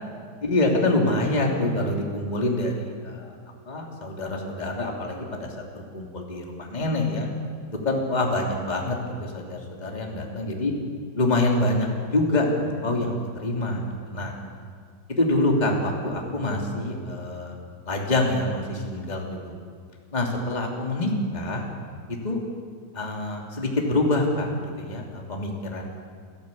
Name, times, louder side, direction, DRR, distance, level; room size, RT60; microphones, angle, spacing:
voice 1, 0.4-3.3 3.6-7.3 7.6-10.7 11.1-11.9 12.1-13.1 13.4-14.3 15.1-17.6 17.8-19.5 20.1-21.6 22.1-22.4 22.9-25.8, left 2 dB, 15° left, 0 dB, 1.6 m, -26 dB
28.0 x 15.0 x 8.5 m, 2.1 s
omnidirectional pair, 5.7 m